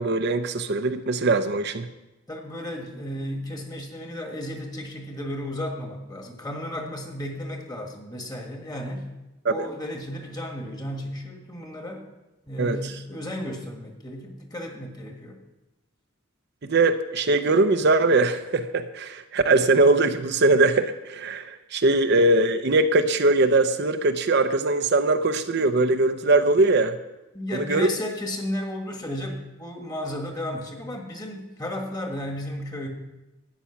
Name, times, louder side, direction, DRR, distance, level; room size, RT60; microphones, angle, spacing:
voice 1, 0.0-1.9 9.4-9.5 12.6-12.8 16.6-27.0 27.5-27.9, right 2 dB, 50° right, 8 dB, 0.6 m, -21 dB
voice 2, 2.3-9.1 9.4-12.0 12.5-15.4 27.3-32.9, left 1 dB, 20° left, 2 dB, 1.6 m, -33 dB
13.0 x 9.1 x 5.8 m, 1.0 s
head